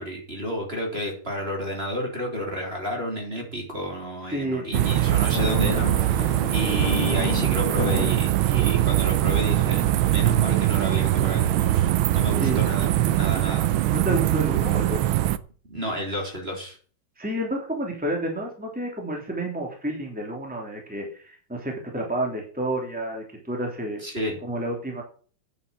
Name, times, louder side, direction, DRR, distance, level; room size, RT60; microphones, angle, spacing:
voice 1, 0.0-11.9 12.1-13.7 15.7-16.8 24.0-24.4, equal, 25° right, 0 dB, 3.8 m, -31 dB
voice 2, 4.3-5.1 12.4-12.6 13.9-15.0 17.2-24.0 24.4-25.0, right 1 dB, 5° right, 0 dB, 3.1 m, -30 dB
sound 1, 4.7-15.4, right 14 dB, 75° right, 1.5 m, -22 dB
sound 2, 5.3-8.2 8.6-8.9 9.2-9.4, left 9 dB, 85° left, 2.1 m, -31 dB
9.7 x 8.4 x 8.5 m, 0.42 s
omnidirectional pair, 2.3 m